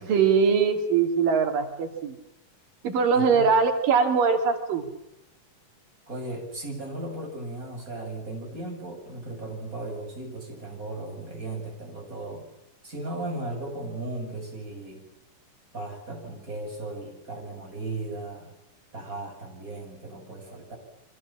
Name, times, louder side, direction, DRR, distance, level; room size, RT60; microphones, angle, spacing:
voice 1, 0.0-2.2 2.8-4.9, right 5 dB, 85° right, 5 dB, 4.3 m, -22 dB
voice 2, 3.1-3.5 6.1-12.5 12.8-15.1 15.7-18.5 18.9-20.8, right 2 dB, 25° right, 2 dB, 8.0 m, -36 dB
29.5 x 25.0 x 7.4 m, 0.80 s
omnidirectional pair, 3.8 m